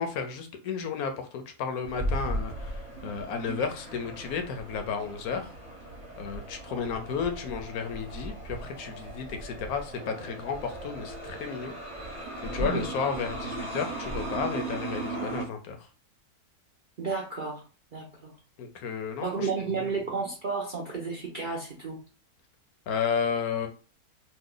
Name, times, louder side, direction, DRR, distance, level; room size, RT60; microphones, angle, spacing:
voice 1, 0.0-5.5 6.2-11.7 12.4-15.8 18.6-19.5 22.9-23.7, left 6 dB, 75° left, 6 dB, 1.1 m, -32 dB
sound 1, 1.8-15.5, right 1 dB, 30° right, 0.9 m, -37 dB
voice 2, 17.0-17.6 17.9-18.3 19.2-22.0, right 4 dB, 60° right, -2 dB, 0.5 m, -32 dB
3.0 x 2.2 x 3.7 m, 0.36 s
omnidirectional pair, 1.6 m